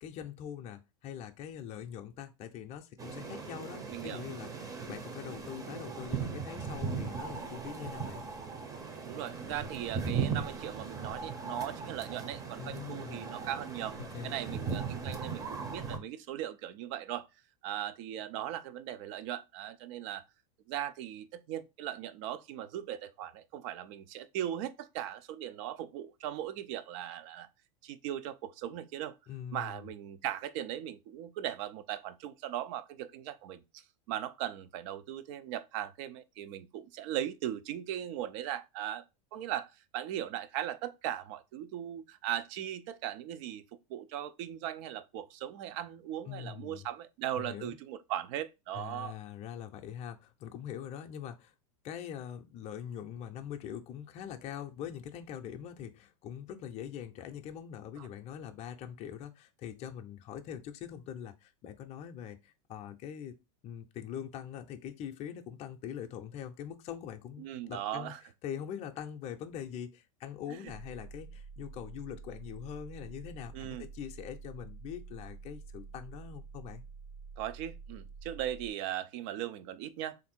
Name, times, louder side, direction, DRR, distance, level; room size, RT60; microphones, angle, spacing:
voice 1, 0.0-8.3 12.6-13.4 14.0-14.7 29.3-29.9 46.3-46.9 47.4-47.7 48.7-51.5 51.8-63.4 63.6-68.1 68.4-76.8, left 9 dB, 40° left, 0.5 m, -43 dB
sound 1, 3.0-16.0, right 5 dB, 20° right, 0.7 m, -38 dB
voice 2, 3.9-4.2 9.0-14.0 14.2-17.3 17.6-20.2 20.7-27.5 27.8-29.1 29.5-33.6 34.1-39.0 39.3-49.2 58.0-58.1 67.4-68.2 70.5-70.6 73.5-73.9 77.4-80.2, right 11 dB, 60° right, 0.5 m, -38 dB
sound 2, 70.7-78.7, right 5 dB, 75° right, 1.0 m, -48 dB
3.5 x 2.6 x 4.2 m
supercardioid pair, 115°, 18 cm